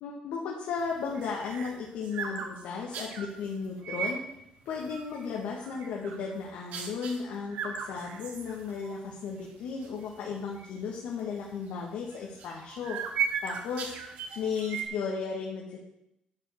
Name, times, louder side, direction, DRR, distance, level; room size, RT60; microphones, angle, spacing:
voice 1, 0.0-4.2 4.7-13.0 13.4-13.9 14.4-15.8, left 5 dB, 85° left, -2 dB, 1.8 m, -35 dB
sound 1, 0.9-3.3 3.8-4.2 4.7-5.3 5.6-6.3 6.7-7.2 7.5-9.0 9.3-9.4 9.8-10.1 10.6-10.7 12.1-14.8, right 6 dB, 75° right, 1.8 m, -36 dB
10.5 x 5.3 x 7.8 m, 0.82 s
cardioid pair, 170°, 3 cm